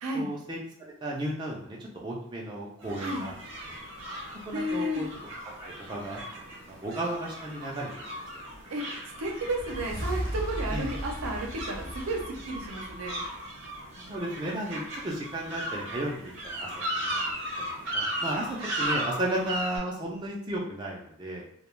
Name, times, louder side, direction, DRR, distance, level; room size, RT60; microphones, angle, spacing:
voice 1, 0.1-3.3 3.6-3.7 4.7-5.1 5.6-6.2 6.7-8.2 10.7-10.9 14.0-16.7 17.0-21.4, right 1 dB, 20° right, -3 dB, 0.4 m, -34 dB
sound 1, 2.8-19.8, right 1 dB, 55° right, 0.8 m, -37 dB
voice 2, 4.5-5.0 8.7-13.2, right 1 dB, 85° right, 1 dB, 0.6 m, -32 dB
sound 2, 9.3-13.7, equal, 45° left, 0.5 m, -36 dB
2.3 x 2.1 x 3.0 m, 0.67 s
head